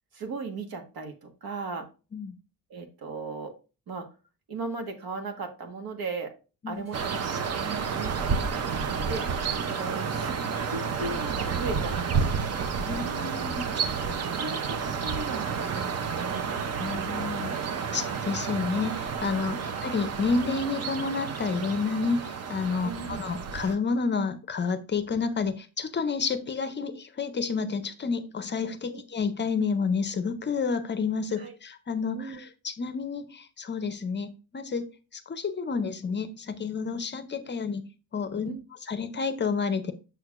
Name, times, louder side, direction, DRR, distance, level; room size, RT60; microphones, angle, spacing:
voice 1, 0.1-1.9 2.7-3.6 3.9-4.1 4.5-6.3 6.7-10.4 10.7-12.4 13.1-13.3 14.1-16.5 19.5-19.6 22.8-23.2 28.9-29.0 31.3-31.6 32.1-32.4 38.4-38.6, right 3 dB, 85° right, 5 dB, 1.5 m, -37 dB
sound 1, 6.7-14.7, right 2 dB, 65° right, 2.4 m, -49 dB
sound 2, 6.9-23.7, right 6 dB, 45° right, 0.6 m, -30 dB
voice 2, 12.9-13.6 16.8-17.5 17.9-34.9 35.1-37.8 38.1-38.5 38.8-39.9, left 5 dB, 30° left, 11 dB, 0.5 m, -30 dB
6.7 x 6.3 x 2.4 m, 0.32 s
wide cardioid pair, 180°, 36 cm